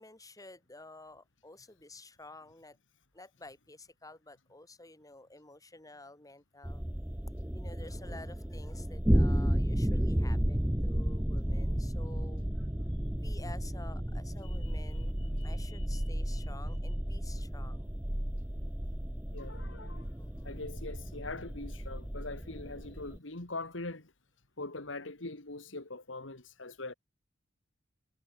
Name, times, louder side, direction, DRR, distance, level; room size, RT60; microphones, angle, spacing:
voice 1, 0.0-2.8 3.1-6.8 7.5-12.4 13.2-15.2 15.4-17.9 20.2-20.6, left 2 dB, 20° left, 4.3 m, -51 dB
sound 1, 6.6-23.2, equal, 10° right, 0.8 m, -33 dB
voice 2, 14.4-16.5 19.3-20.1 20.4-24.1 24.6-26.9, left 2 dB, 85° left, 2.6 m, -43 dB
head